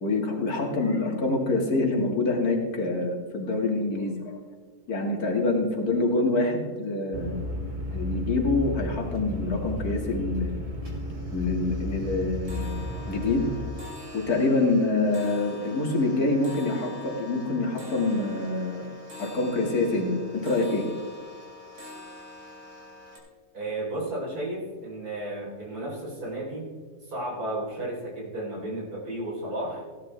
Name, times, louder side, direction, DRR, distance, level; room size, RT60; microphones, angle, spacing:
voice 1, 0.0-4.4 4.9-7.4 7.9-10.6 11.3-12.8 13.1-13.5 14.1-18.9 19.2-20.8, left 2 dB, 80° left, 1 dB, 2.5 m, -26 dB
sound 1, 7.1-13.7, left 1 dB, 35° right, 1.4 m, -33 dB
sound 2, 9.3-9.8 10.2-10.5 10.8-23.2, left 2 dB, 55° right, 3.8 m, -44 dB
voice 2, 23.5-26.7 27.0-29.8, right 1 dB, 80° right, -4 dB, 4.5 m, -33 dB
16.5 x 10.5 x 3.4 m, 1.5 s
omnidirectional pair, 1.6 m